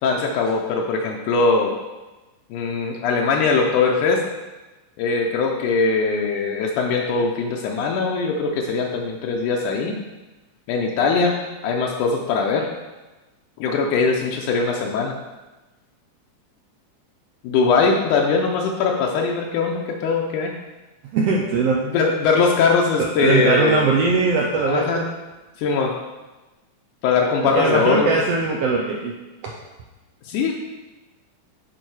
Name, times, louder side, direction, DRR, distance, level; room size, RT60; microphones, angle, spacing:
voice 1, 0.0-1.7 2.5-4.2 5.0-10.0 10.7-12.7 13.6-15.2 17.4-20.5 21.8-23.9 24.7-25.0 25.6-25.9 27.0-28.1 30.3-30.6, left 4 dB, 80° left, 0 dB, 2.1 m, -21 dB
voice 2, 21.1-21.8 23.0-25.1 27.5-29.2 29.4-29.5, right 4 dB, 80° right, -1 dB, 1.4 m, -20 dB
9.0 x 4.1 x 4.7 m, 1.1 s
omnidirectional pair, 3.6 m